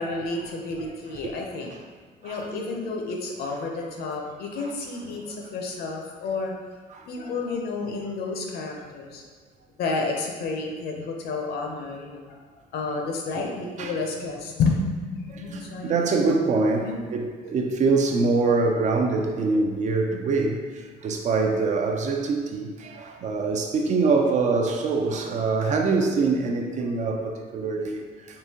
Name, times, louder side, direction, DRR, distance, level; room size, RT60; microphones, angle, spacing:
voice 1, 0.0-1.7 2.2-6.5 7.1-9.2 9.8-12.4 12.7-15.9 16.8-17.0, left 3 dB, 70° left, 1 dB, 0.6 m, -30 dB
voice 2, 15.3-20.6 21.0-28.1, right 3 dB, 45° right, 3 dB, 0.4 m, -24 dB
3.7 x 2.7 x 2.8 m, 1.5 s
cardioid pair, 110°, 17 cm